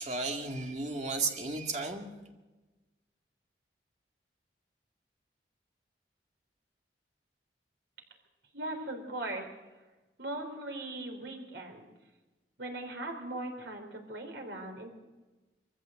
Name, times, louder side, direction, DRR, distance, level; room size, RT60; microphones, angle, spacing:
voice 1, 0.0-2.1, right 3 dB, 40° right, 3 dB, 2.1 m, -34 dB
voice 2, 8.5-9.5 10.2-11.8 12.6-14.9, right 2 dB, 75° right, 3 dB, 3.9 m, -39 dB
23.0 x 15.0 x 7.7 m, 1.2 s
head